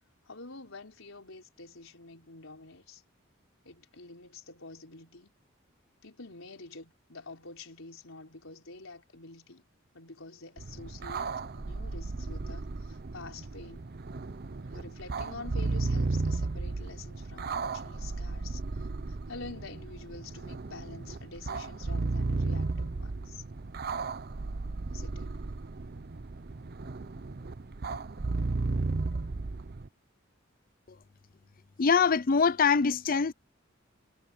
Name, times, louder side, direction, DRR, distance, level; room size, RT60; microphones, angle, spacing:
voice 1, 0.2-3.0 3.6-5.3 6.0-9.7 9.9-13.9 14.7-23.4 24.9-25.3, left 3 dB, 80° left, 4.3 m, -47 dB
sound 1, 10.6-29.9, right 3 dB, 50° right, 0.7 m, -34 dB
voice 2, 31.8-33.3, left 5 dB, 45° left, 0.5 m, -24 dB
head